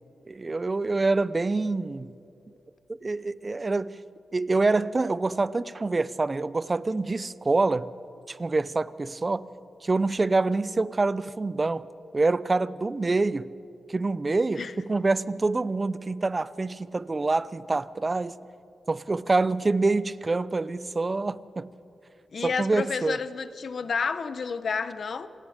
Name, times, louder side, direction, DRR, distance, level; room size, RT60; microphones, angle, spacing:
voice 1, 0.3-2.1 3.0-3.9 4.3-7.9 8.3-9.5 9.8-11.9 12.1-13.5 13.9-18.4 18.9-21.7 22.4-23.2, right 3 dB, 35° right, 0.7 m, -26 dB
voice 2, 22.3-25.3, left 5 dB, 65° left, 1.0 m, -30 dB
27.0 x 18.5 x 5.2 m
cardioid pair, 55°, 0 cm